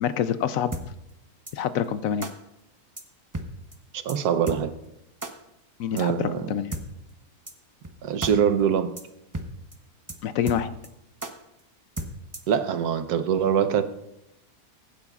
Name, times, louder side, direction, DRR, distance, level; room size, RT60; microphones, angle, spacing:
voice 1, 0.0-0.7 1.5-2.3 5.8-6.7 10.2-10.7, left 9 dB, 70° left, 12 dB, 0.9 m, -26 dB
sound 1, 0.7-0.8 1.5-1.6 2.2-2.3 3.0-3.1 3.3-3.5 3.7-3.8 4.1-4.2 4.5-4.6 5.2-5.3 6.0-6.1 6.7-6.8 7.5-7.6 7.8-7.9 8.2-8.3 8.6-8.7 9.0-9.1 9.3-9.5 9.7-9.8 10.1-10.2 10.5-10.9 11.2-11.3 12.0-12.5, right 2 dB, 20° right, 0.6 m, -33 dB
voice 2, 3.9-4.7 5.9-6.5 8.0-8.9 12.5-13.8, right 8 dB, 80° right, 11 dB, 1.3 m, -23 dB
22.5 x 9.9 x 2.4 m, 0.86 s
omnidirectional pair, 1.6 m